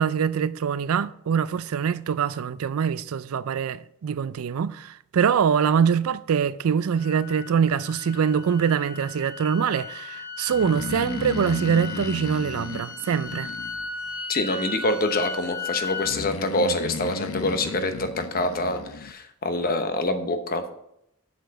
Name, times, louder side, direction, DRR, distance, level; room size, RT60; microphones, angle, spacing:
voice 1, 0.0-13.5, right 7 dB, 90° right, 0.4 m, -24 dB
sound 1, 7.0-16.1, left 4 dB, 25° left, 2.6 m, -36 dB
Breathing, 10.5-14.2 16.0-19.1, left 4 dB, 75° left, 0.6 m, -35 dB
voice 2, 14.3-20.7, left 2 dB, 45° left, 0.9 m, -26 dB
7.8 x 6.8 x 5.2 m
head